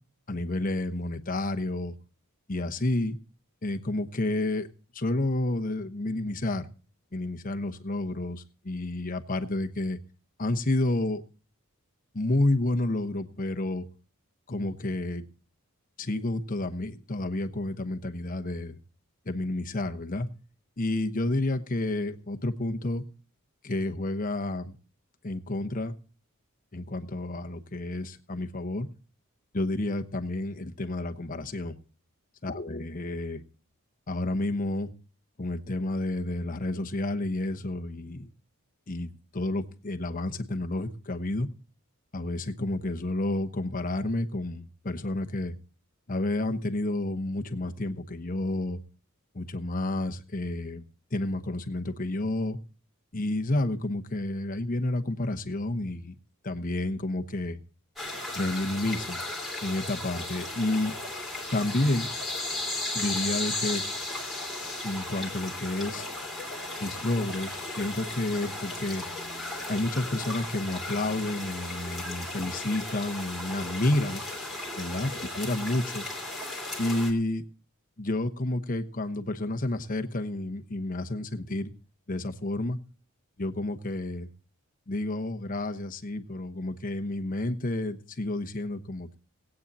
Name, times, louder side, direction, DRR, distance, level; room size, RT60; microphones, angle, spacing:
voice 1, 0.3-2.0 2.5-3.2 3.6-4.7 4.9-6.7 7.1-10.0 10.4-11.2 12.1-13.9 14.5-15.3 16.0-18.8 19.3-20.3 20.8-23.0 23.6-24.8 25.2-26.0 26.7-28.9 29.5-31.8 32.4-33.4 34.1-34.9 35.4-38.3 38.9-41.5 42.1-45.6 46.1-48.8 49.3-50.8 51.1-52.6 53.1-56.1 56.4-57.6 58.3-59.2 59.6-61.0 61.5-62.1 62.9-63.9 64.8-66.1 66.8-69.0 69.7-74.2 74.8-75.1 75.4-76.1 76.8-77.4 78.0-81.7 82.1-82.8 83.4-84.3 84.9-89.2, left 2 dB, 40° left, 6 dB, 1.0 m, -30 dB
sound 1, 58.0-77.1, left 2 dB, ahead, 2.8 m, -35 dB
19.0 x 8.8 x 4.1 m, 0.40 s
head